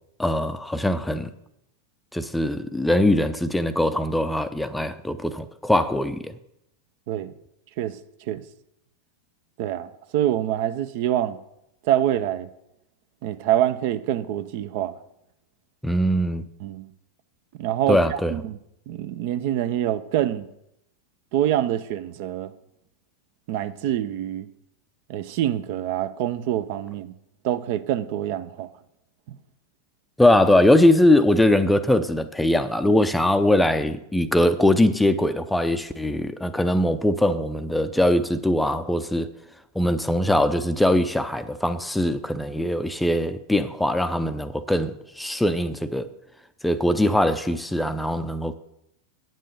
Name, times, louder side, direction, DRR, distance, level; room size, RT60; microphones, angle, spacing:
voice 1, 0.2-1.3 2.1-6.3 15.8-16.4 17.9-18.3 30.2-39.3 39.8-46.1 46.6-48.5, left 1 dB, 5° left, 0.6 m, -21 dB
voice 2, 9.6-11.4 11.8-12.5 13.2-14.9 16.6-16.9 17.6-18.6 18.9-20.5 21.3-22.5 23.5-24.5 25.1-27.1 27.4-28.7, right 11 dB, 50° right, 0.6 m, -25 dB
9.2 x 7.5 x 6.7 m
figure-of-eight pair, 90°, 0 cm